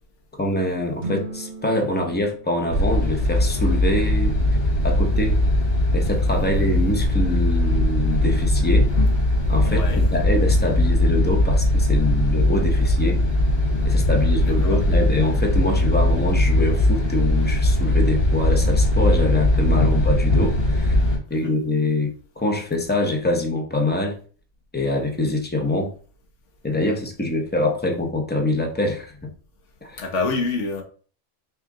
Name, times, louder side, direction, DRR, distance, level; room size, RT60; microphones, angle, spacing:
voice 1, 0.4-4.3 4.8-5.4 5.9-8.9 9.5-13.2 13.8-21.0 21.3-24.2 24.7-25.9 26.6-29.3 29.8-30.0, left 2 dB, 10° left, 0.5 m, -24 dB
sound 1, 1.0-3.4, right 2 dB, 75° right, 0.4 m, -36 dB
sound 2, 2.7-21.2, left 1 dB, 90° left, 3.1 m, -20 dB
voice 2, 9.6-10.1 14.4-14.8 21.3-21.6 30.0-30.8, left 3 dB, 60° left, 1.3 m, -27 dB
5.6 x 2.5 x 3.7 m
omnidirectional pair, 1.5 m